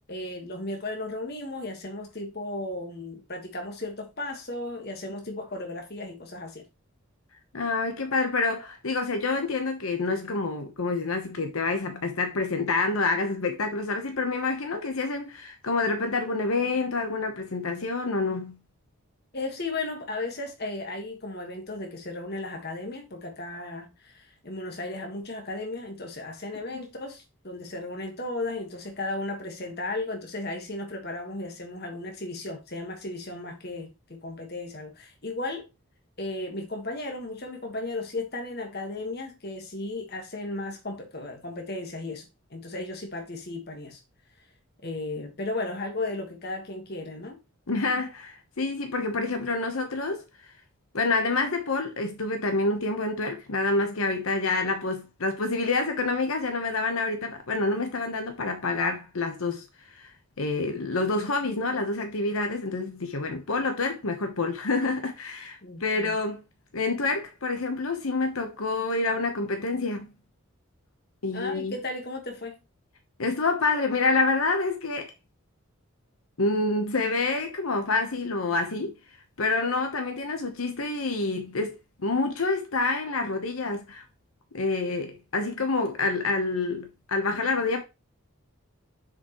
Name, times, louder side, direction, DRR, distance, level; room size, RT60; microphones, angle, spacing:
voice 1, 0.1-6.7 19.3-35.7 36.2-44.0 44.8-47.4 65.6-66.1 71.3-72.6, left 2 dB, 50° left, 1.6 m, -35 dB
voice 2, 7.5-18.6 47.7-50.2 50.9-59.6 59.9-60.1 60.4-66.4 66.7-70.1 71.2-71.8 73.2-75.1 76.4-78.9 79.4-84.0 84.5-87.8, left 3 dB, 90° left, 1.1 m, -27 dB
6.8 x 5.1 x 3.1 m
head